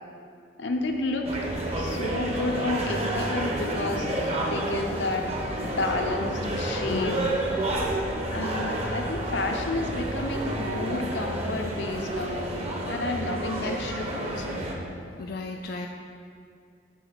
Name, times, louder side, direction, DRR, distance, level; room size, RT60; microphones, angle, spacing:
voice 1, 0.6-1.4 1.8-7.1 8.3-14.6, left 2 dB, 80° left, 3 dB, 0.8 m, -31 dB
sound 1, 0.7-10.4, right 1 dB, 75° right, 1.8 m, -42 dB
sound 2, 1.2-14.7, right 1 dB, 35° right, 0.8 m, -30 dB
voice 2, 6.9-7.4 13.6-13.9 15.2-15.9, left 3 dB, 55° left, 2 dB, 0.3 m, -34 dB
7.0 x 3.9 x 6.4 m, 2.4 s
head